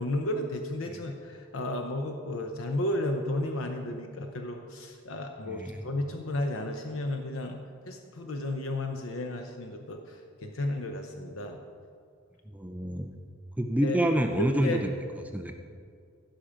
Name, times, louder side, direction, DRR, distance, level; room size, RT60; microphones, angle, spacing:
voice 1, 0.0-7.6 7.9-11.6 13.8-14.0 14.4-14.8, left 1 dB, 90° left, 4 dB, 0.8 m, -33 dB
voice 2, 12.5-13.1 13.6-14.9 15.3-15.5, equal, 10° right, 5 dB, 0.5 m, -27 dB
15.5 x 5.9 x 5.0 m, 2.2 s
head